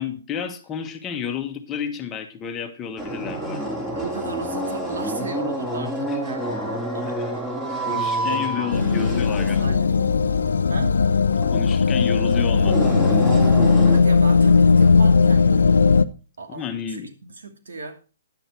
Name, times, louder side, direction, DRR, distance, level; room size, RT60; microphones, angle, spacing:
voice 1, 0.0-3.7 5.8-6.2 7.1-7.2 7.9-9.7 11.5-13.3 16.5-17.1, left 7 dB, 20° left, 7 dB, 1.4 m, -31 dB
sound 1, 3.0-14.0, right 1 dB, 10° right, 2.8 m, -29 dB
voice 2, 3.9-9.9 10.7-11.0 13.8-15.9 16.4-17.9, right 3 dB, 80° right, 6 dB, 2.5 m, -36 dB
sound 2, 8.7-16.0, left 5 dB, 80° left, 0.7 m, -17 dB
10.5 x 8.9 x 4.6 m, 0.34 s
hypercardioid pair, 140°, 0 cm